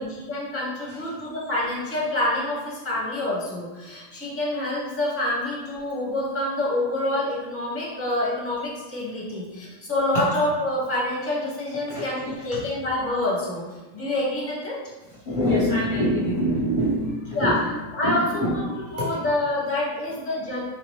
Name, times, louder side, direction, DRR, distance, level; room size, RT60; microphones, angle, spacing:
voice 1, 0.0-13.6 13.9-14.8 17.3-17.6 17.9-18.7 18.9-20.7, left 1 dB, 10° left, -6 dB, 0.9 m, -27 dB
voice 2, 11.9-12.7 15.3-17.7 18.0-19.2, equal, 45° left, -8 dB, 0.8 m, -25 dB
3.6 x 2.9 x 3.1 m, 1.2 s
omnidirectional pair, 1.3 m